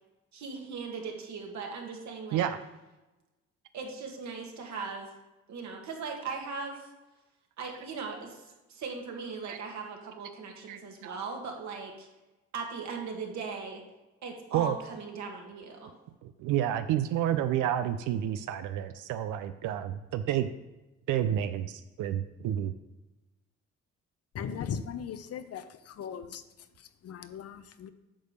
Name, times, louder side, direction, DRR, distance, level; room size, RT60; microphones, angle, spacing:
voice 1, 0.3-2.5 3.7-5.1 5.5-6.9 7.6-8.4 8.7-12.1 12.5-13.8 14.2-15.9, right 4 dB, 65° right, 1 dB, 1.8 m, -39 dB
voice 2, 10.7-11.2 14.5-14.7 16.4-20.5 21.1-22.7, right 11 dB, 90° right, 10 dB, 0.5 m, -30 dB
voice 3, 24.3-25.6 26.0-26.4 27.0-27.9, left 7 dB, 55° left, 11 dB, 0.7 m, -37 dB
8.8 x 3.5 x 6.7 m, 1.0 s
cardioid pair, 90°, 30 cm